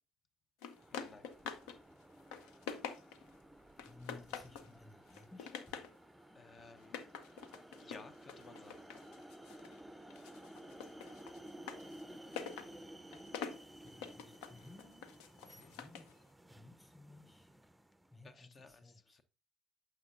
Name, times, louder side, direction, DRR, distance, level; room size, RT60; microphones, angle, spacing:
sound 1, 0.6-1.8 2.1-3.3 3.8-4.7 5.1-6.0 6.8-9.8 10.1-16.1, left 7 dB, 80° left, 0.7 m, -47 dB
sound 2, 0.7-18.2, right 1 dB, 10° right, 0.5 m, -55 dB
voice 1, 0.9-1.3 6.3-7.0 7.8-8.9 15.4-15.7 18.2-19.2, left 4 dB, 45° left, 0.7 m, -56 dB
voice 2, 3.7-5.6 13.8-15.1 15.5-16.1 16.5-17.6 18.1-19.2, left 2 dB, 15° left, 4.9 m, -58 dB
9.4 x 6.5 x 2.5 m
hypercardioid pair, 60°, 0 cm